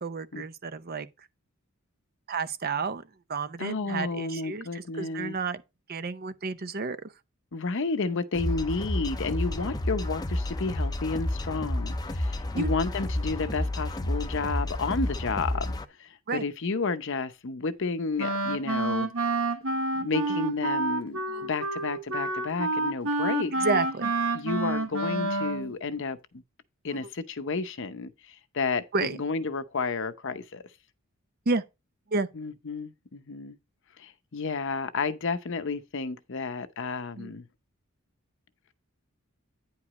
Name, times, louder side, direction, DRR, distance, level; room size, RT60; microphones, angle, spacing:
voice 1, 0.0-1.1 2.3-3.0 3.3-5.6 5.9-7.1 12.5-12.7 16.3-16.4 21.3-21.5 23.6-24.1 28.9-29.2 31.5-31.6 32.1-32.3 37.2-37.3, right 4 dB, 45° right, 0.7 m, -30 dB
voice 2, 3.6-5.4 7.5-19.1 19.9-23.5 24.3-26.4 26.8-30.6 32.3-33.6 34.0-37.5, left 4 dB, 60° left, 0.7 m, -31 dB
sound 1, 8.3-15.8, left 1 dB, 20° left, 0.6 m, -30 dB
Wind instrument woodwind instrument, 18.2-25.7, right 2 dB, 65° right, 1.2 m, -28 dB
9.8 x 4.9 x 4.2 m
head